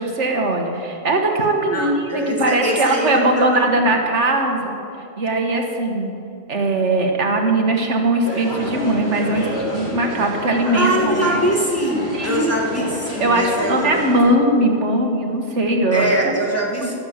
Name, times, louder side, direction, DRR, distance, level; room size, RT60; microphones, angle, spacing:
voice 1, 0.0-4.8 5.2-6.2 6.5-11.4 12.1-12.9 13.2-16.3 16.8-16.9, right 2 dB, 75° right, 3 dB, 1.7 m, -20 dB
voice 2, 1.6-3.8 10.6-14.4 15.9-17.0, right 1 dB, 10° left, -4 dB, 2.0 m, -23 dB
sound 1, 8.2-14.2, equal, 60° left, 3.6 m, -29 dB
12.5 x 10.5 x 7.3 m, 2.5 s
omnidirectional pair, 1.2 m